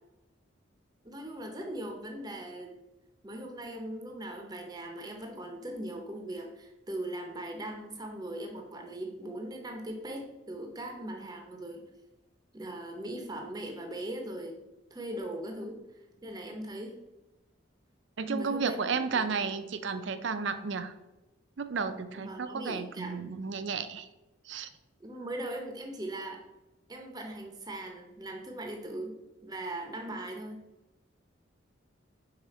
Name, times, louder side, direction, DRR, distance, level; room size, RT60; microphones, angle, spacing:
voice 1, 1.0-2.7 3.2-11.9 12.5-14.6 14.9-15.8 16.2-17.0 18.3-18.8 19.1-19.2 22.2-23.4 25.0-26.4 26.9-29.1 29.4-30.6, right 1 dB, 20° right, 2 dB, 0.6 m, -39 dB
voice 2, 18.2-20.9 21.6-24.1 24.5-24.7, right 5 dB, 65° right, 11 dB, 0.5 m, -33 dB
4.9 x 4.6 x 4.1 m, 1.0 s
head